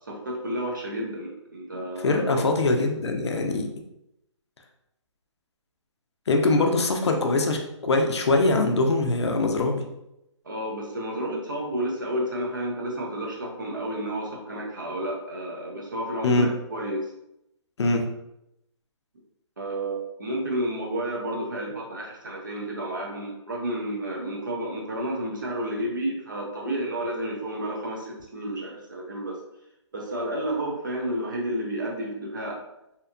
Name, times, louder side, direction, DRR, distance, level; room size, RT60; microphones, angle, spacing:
voice 1, 0.1-2.5 6.6-6.7 10.4-17.1 19.6-29.4 29.9-32.6, right 1 dB, 40° right, 0 dB, 0.5 m, -31 dB
voice 2, 2.0-3.7 6.3-9.8 16.2-16.5 17.8-18.0, left 2 dB, 60° left, 3 dB, 0.4 m, -22 dB
2.8 x 2.1 x 2.4 m, 0.85 s
hypercardioid pair, 180°, 16 cm